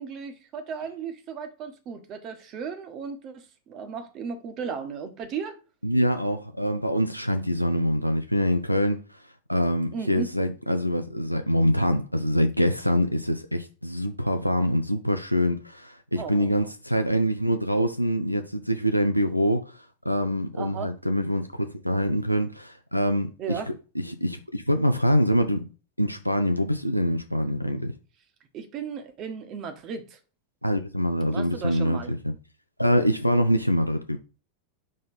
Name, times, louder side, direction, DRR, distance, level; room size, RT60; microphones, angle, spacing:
voice 1, 0.0-5.6 9.9-10.3 16.2-16.6 20.5-20.9 23.4-23.7 28.5-30.2 31.3-32.1, right 6 dB, 35° right, 1.4 m, -35 dB
voice 2, 5.8-9.2 9.5-25.7 26.0-27.9 30.6-32.3 32.8-34.2, equal, 90° left, 0.5 m, -25 dB
5.1 x 3.8 x 5.6 m
figure-of-eight pair, 90°, 0 cm